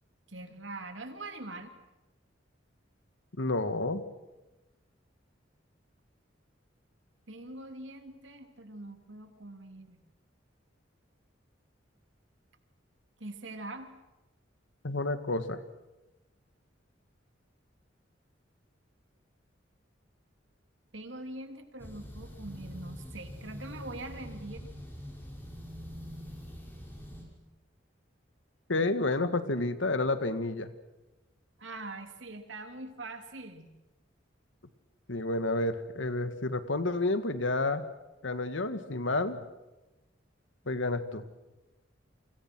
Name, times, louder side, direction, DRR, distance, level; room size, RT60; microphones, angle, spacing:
voice 1, 0.3-1.7 7.3-10.0 13.2-13.9 20.9-24.7 31.6-33.7, right 2 dB, 75° right, 6 dB, 3.0 m, -43 dB
voice 2, 3.4-4.0 14.8-15.6 28.7-30.7 35.1-37.8 38.2-39.4 40.7-41.2, left 2 dB, 80° left, 10 dB, 1.8 m, -30 dB
sound 1, 21.8-27.2, equal, 10° left, 5.5 m, -44 dB
29.5 x 25.0 x 6.2 m, 1.1 s
head